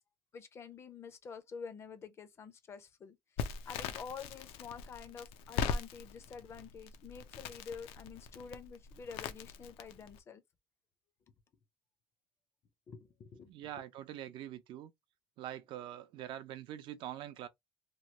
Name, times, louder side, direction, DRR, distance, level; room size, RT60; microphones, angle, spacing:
voice 1, 0.3-10.4 12.9-13.7, left 6 dB, 25° left, 0.5 m, -48 dB
Crackle, 3.4-10.2, left 6 dB, 75° left, 0.6 m, -41 dB
voice 2, 13.5-14.9 15.4-17.5, right 12 dB, 55° right, 0.5 m, -44 dB
3.0 x 2.3 x 2.8 m
cardioid pair, 180°, 10 cm